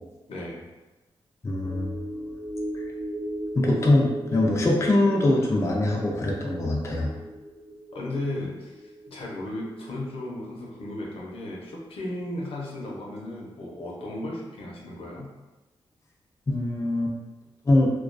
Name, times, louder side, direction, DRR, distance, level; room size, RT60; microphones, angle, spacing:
voice 1, 0.3-0.6 7.9-15.3, left 1 dB, 80° left, -3 dB, 0.6 m, -35 dB
voice 2, 1.4-2.4 2.7-2.8 3.6-7.1 16.5-17.1 17.7-17.9, left 2 dB, 30° left, -2 dB, 0.4 m, -23 dB
sound 1, 1.6-12.2 12.5-12.7, right 1 dB, 30° right, 0.5 m, -37 dB
2.3 x 2.2 x 2.4 m, 1.1 s
cardioid pair, 85°, 10 cm